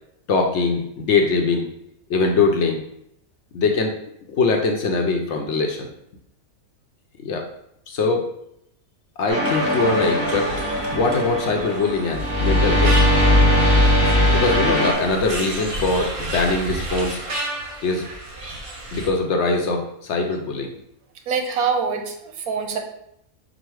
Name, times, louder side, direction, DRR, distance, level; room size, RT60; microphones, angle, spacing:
voice 1, 0.3-1.7 2.1-2.8 3.5-3.9 4.3-5.9 7.2-7.5 7.9-8.3 9.2-10.5 10.9-13.0 14.3-17.2 17.8-18.0 18.9-20.7, left 3 dB, 65° left, 2 dB, 0.7 m, -22 dB
sound 1, 9.3-14.9, left 1 dB, 70° right, 1.8 m, -19 dB
sound 2, 9.4-19.1, right 1 dB, 45° right, 0.4 m, -32 dB
voice 2, 21.3-22.8, right 5 dB, 90° right, 3 dB, 1.2 m, -25 dB
5.1 x 2.0 x 4.5 m, 0.76 s
omnidirectional pair, 1.5 m